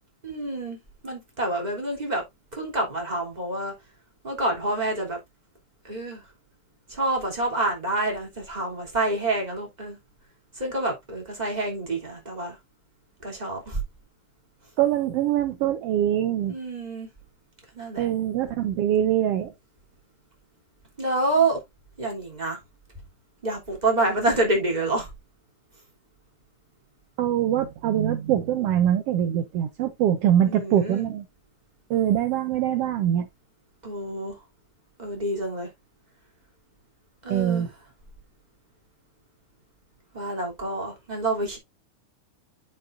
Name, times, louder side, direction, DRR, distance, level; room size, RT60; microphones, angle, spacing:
voice 1, 0.2-0.8 1.0-2.2 2.5-3.7 4.2-5.2 5.8-6.2 6.9-10.0 10.5-12.6 13.2-13.8 16.5-17.1 17.7-18.1 21.0-21.6 22.0-22.6 23.4-25.1 30.4-31.0 33.8-34.4 35.0-35.7 37.2-37.7 40.1-41.6, right 2 dB, 15° right, 3.0 m, -27 dB
voice 2, 14.8-16.5 18.0-19.5 27.2-31.2 31.9-33.3 37.3-37.7, right 10 dB, 75° right, 1.4 m, -23 dB
11.0 x 5.3 x 2.6 m
omnidirectional pair, 3.5 m